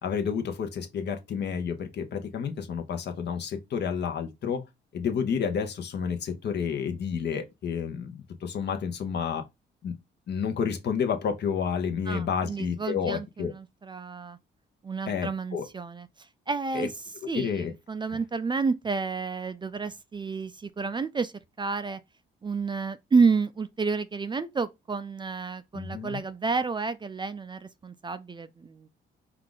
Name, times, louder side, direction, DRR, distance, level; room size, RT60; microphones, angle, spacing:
voice 1, 0.0-4.6 4.9-9.4 9.8-9.9 10.3-13.5 15.1-15.6 16.7-16.9 17.3-17.7 25.7-26.2, left 7 dB, 60° left, 0.9 m, -30 dB
voice 2, 12.1-14.4 14.8-16.9 17.3-22.0 22.4-28.9, right 4 dB, 25° right, 0.4 m, -30 dB
4.6 x 2.4 x 3.8 m
cardioid pair, 90°, 20 cm